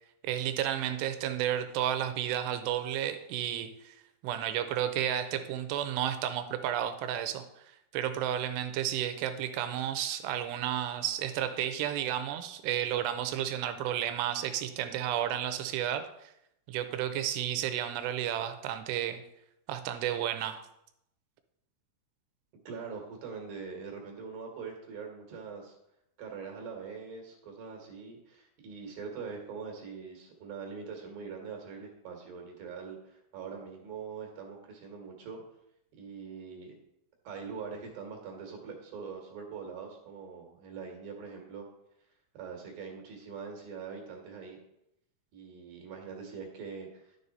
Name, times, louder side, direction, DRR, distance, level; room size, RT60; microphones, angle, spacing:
voice 1, 0.2-4.0 4.2-7.6 7.9-16.1 16.7-19.2 19.7-20.6, right 11 dB, 85° right, 9 dB, 2.9 m, -32 dB
voice 2, 22.6-25.7 26.2-35.4 36.0-36.7 37.2-41.7 42.3-44.6 45.3-47.2, right 5 dB, 65° right, 1 dB, 3.0 m, -43 dB
11.0 x 7.2 x 4.1 m, 0.82 s
omnidirectional pair, 4.7 m